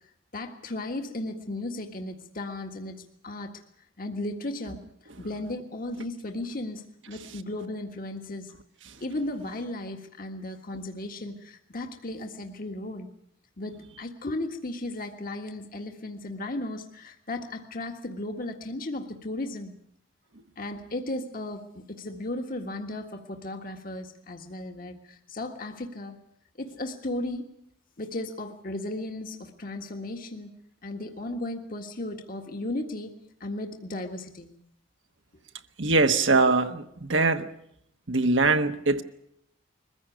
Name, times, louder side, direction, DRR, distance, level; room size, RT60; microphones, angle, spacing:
voice 1, 0.3-3.6 4.0-4.8 5.2-8.5 9.0-13.1 13.6-19.7 20.6-26.2 26.6-27.5 28.0-30.5 30.8-34.5, left 1 dB, 45° left, 1.7 m, -35 dB
voice 2, 35.8-37.5 38.1-39.0, right 3 dB, 65° right, 1.3 m, -22 dB
22.0 x 15.0 x 9.3 m
head